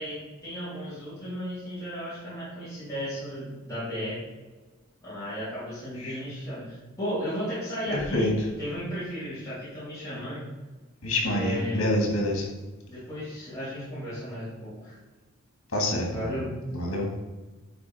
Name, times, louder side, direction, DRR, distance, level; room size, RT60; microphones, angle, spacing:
voice 1, 0.0-4.2 5.0-8.3 8.6-10.5 11.2-11.8 12.9-15.0 16.0-16.5, equal, 15° left, -13 dB, 2.1 m, -34 dB
voice 2, 11.0-12.4 15.7-16.3 16.7-17.1, left 1 dB, 80° left, 0 dB, 1.8 m, -26 dB
9.3 x 3.4 x 3.5 m, 1.2 s
head